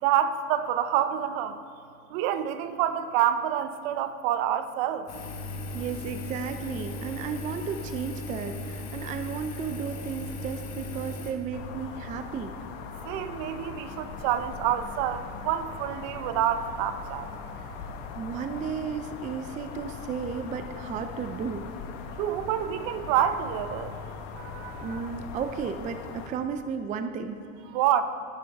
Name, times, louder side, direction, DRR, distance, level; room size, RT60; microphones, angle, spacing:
voice 1, 0.0-1.6 2.1-5.1 13.0-17.3 22.2-24.0 24.3-25.0 27.7-28.0, right 10 dB, 60° right, 11 dB, 0.7 m, -27 dB
Engine, 5.1-11.3, left 2 dB, 40° left, 1.5 m, -37 dB
voice 2, 5.7-12.5 18.1-21.7 24.8-27.4, right 6 dB, 20° right, 8 dB, 0.4 m, -34 dB
sound 1, 11.5-26.3, left 5 dB, 65° left, 1.3 m, -40 dB
12.0 x 11.0 x 3.5 m, 2.3 s
supercardioid pair, 125°, 38 cm